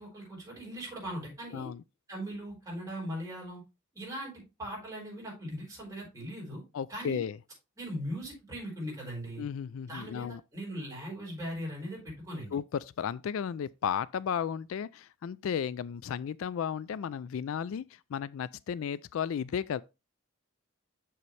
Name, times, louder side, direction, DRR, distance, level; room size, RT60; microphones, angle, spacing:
voice 1, 0.0-1.7 2.1-3.6 3.9-6.6 6.9-7.2 7.8-9.4 9.8-12.6, equal, 15° right, 4.9 m, -39 dB
voice 2, 6.7-7.4 9.4-10.4 12.5-19.8, left 8 dB, 70° left, 0.3 m, -34 dB
7.3 x 6.8 x 3.2 m
head